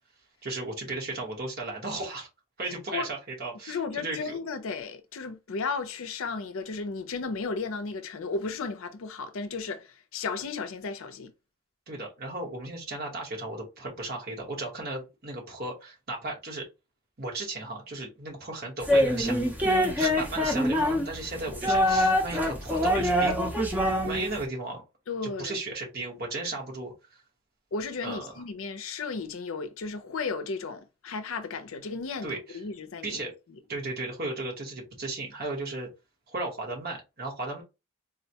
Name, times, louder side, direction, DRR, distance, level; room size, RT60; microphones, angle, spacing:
voice 1, 0.4-2.3 2.6-4.4 11.9-16.7 17.2-19.4 20.0-23.6 24.0-24.8 25.2-26.9 28.0-28.4 32.2-32.6 33.0-33.3 33.7-35.9 36.3-37.6, right 2 dB, 45° right, 1.1 m, -35 dB
voice 2, 2.7-3.1 3.7-11.3 25.1-25.6 27.7-33.2, left 4 dB, 70° left, 0.5 m, -34 dB
sound 1, 18.8-24.4, equal, 10° right, 0.6 m, -25 dB
3.9 x 2.1 x 2.8 m
head